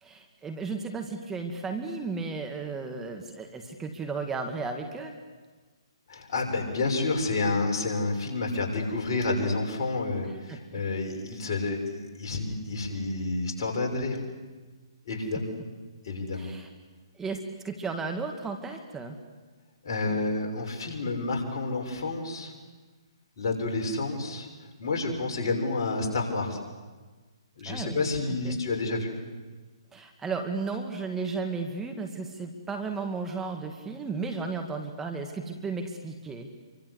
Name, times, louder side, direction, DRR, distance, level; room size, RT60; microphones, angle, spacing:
voice 1, 0.0-5.2 10.5-10.6 16.3-16.7 17.2-19.2 27.7-28.1 28.4-28.6 29.9-36.5, right 4 dB, 10° right, 4 dB, 2.3 m, -34 dB
voice 2, 6.1-14.2 15.0-15.5 16.0-16.5 19.8-22.5 23.4-24.5 24.8-26.6 27.6-29.1, left 3 dB, 50° left, 2 dB, 6.7 m, -29 dB
28.5 x 24.5 x 8.4 m, 1.3 s
figure-of-eight pair, 135°, 3 cm